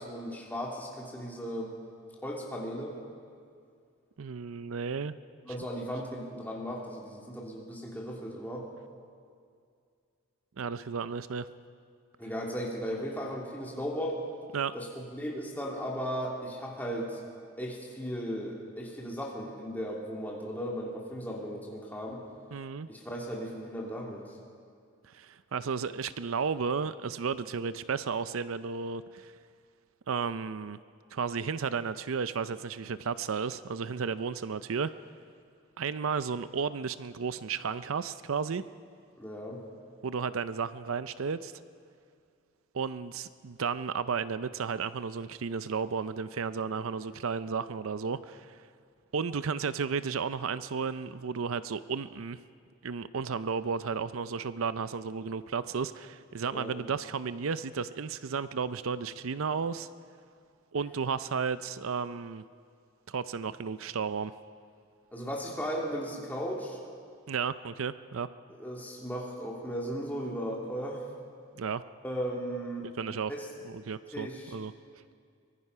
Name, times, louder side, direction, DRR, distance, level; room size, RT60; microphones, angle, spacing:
voice 1, 0.0-1.7 2.2-3.0 5.4-8.7 12.2-14.2 14.7-17.2 17.6-22.2 22.9-24.4 39.2-39.6 56.5-56.8 65.1-66.8 68.6-71.0 72.0-72.9 73.3-73.5 74.1-74.5, equal, 10° left, -2 dB, 3.0 m, -36 dB
voice 2, 4.2-5.2 10.6-11.5 14.5-14.7 22.5-22.9 25.1-29.3 30.1-30.8 31.1-34.9 35.8-38.6 40.0-41.5 42.7-48.6 49.1-52.4 52.8-59.9 60.7-62.4 63.1-64.3 67.3-68.3 71.6-71.8 73.0-73.3 73.6-74.7, right 5 dB, 75° right, 14 dB, 0.5 m, -33 dB
24.0 x 20.0 x 5.6 m, 2.3 s
head